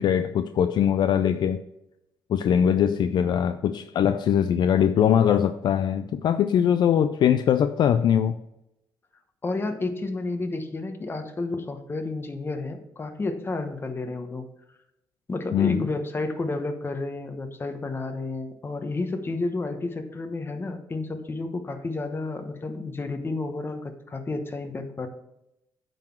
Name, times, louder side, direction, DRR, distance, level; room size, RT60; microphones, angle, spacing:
voice 1, 0.0-1.6 2.3-8.4 15.5-15.8, left 9 dB, 60° left, 0.4 m, -21 dB
voice 2, 9.4-14.5 15.3-25.1, left 3 dB, 25° left, 1.1 m, -31 dB
8.9 x 3.9 x 5.9 m
cardioid pair, 100°, 9 cm